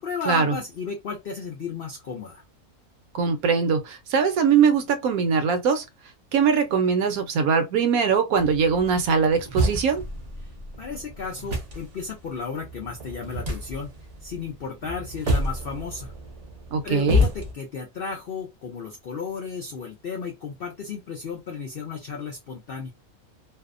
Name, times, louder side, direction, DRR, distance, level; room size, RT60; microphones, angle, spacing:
voice 1, 0.0-2.4 10.8-13.9 14.2-16.1 16.8-22.9, left 5 dB, 80° left, 0.5 m, -34 dB
voice 2, 3.1-5.8 6.3-10.0 16.7-17.2, right 6 dB, 75° right, 1.0 m, -21 dB
sound 1, 8.4-17.5, left 1 dB, 40° right, 0.6 m, -29 dB
2.6 x 2.1 x 2.4 m
omnidirectional pair, 1.6 m